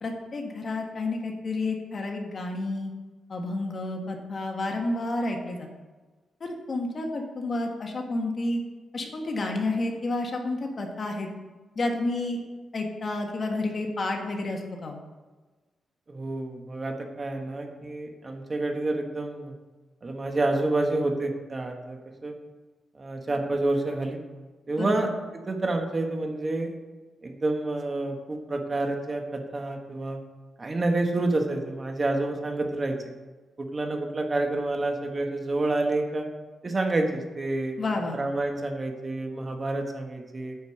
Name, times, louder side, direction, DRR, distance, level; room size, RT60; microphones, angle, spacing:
voice 1, 0.0-2.9 3.3-5.7 6.4-8.6 8.9-11.3 11.7-12.4 12.7-15.0 24.8-25.0 37.8-38.2, left 2 dB, 45° left, 2 dB, 1.6 m, -30 dB
voice 2, 16.1-19.5 20.0-22.3 22.9-24.2 24.7-25.1 25.5-26.7 27.2-30.2 30.6-33.0 33.6-36.3 36.6-37.8 38.1-40.6, right 2 dB, 30° right, 3 dB, 1.4 m, -28 dB
9.5 x 5.2 x 6.4 m, 1.2 s
cardioid pair, 100°, 0 cm